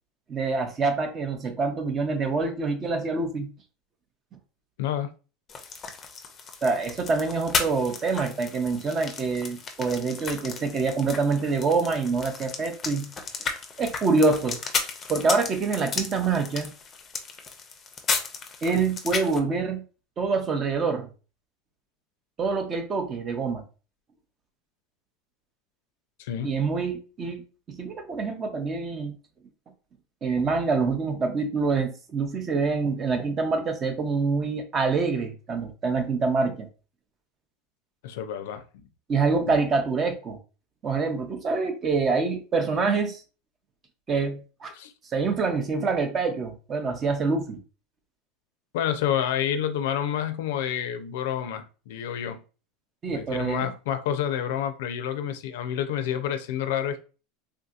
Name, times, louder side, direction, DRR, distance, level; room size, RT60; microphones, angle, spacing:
voice 1, 0.3-3.5 6.6-13.1 13.8-14.6 15.1-16.7 18.6-19.8 20.2-21.1 22.4-23.6 26.4-29.1 30.2-36.7 39.1-40.4 40.8-43.2 44.1-44.7 45.1-47.6 53.0-53.7, right 4 dB, 25° right, 0.6 m, -26 dB
voice 2, 4.8-5.1 26.2-26.5 38.0-38.9 39.5-39.6 44.8-44.9 48.7-52.4 53.1-57.0, left 9 dB, 80° left, 0.4 m, -29 dB
sound 1, 5.5-19.4, left 5 dB, 25° left, 0.5 m, -34 dB
3.5 x 2.7 x 2.4 m
supercardioid pair, 140°, 0 cm